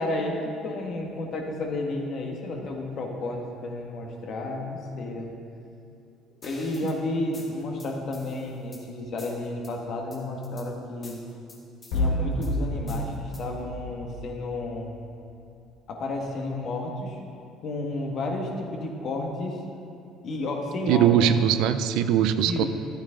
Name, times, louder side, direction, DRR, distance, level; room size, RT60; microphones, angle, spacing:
voice 1, 0.0-5.3 6.4-11.2 11.9-14.9 15.9-17.2 17.6-19.6 20.2-21.3 22.4-22.7, left 2 dB, 60° left, 1 dB, 1.6 m, -31 dB
sound 1, 6.4-7.0 7.3-8.8 9.2-9.7 10.1-10.7 11.0-12.0 12.4-13.6, left 2 dB, 35° left, 2.3 m, -46 dB
sound 2, 11.9-14.8, left 1 dB, 80° left, 1.6 m, -29 dB
voice 2, 20.9-22.6, right 9 dB, 75° right, 11 dB, 0.5 m, -21 dB
12.5 x 9.1 x 3.9 m, 2.5 s
supercardioid pair, 75°, 0 cm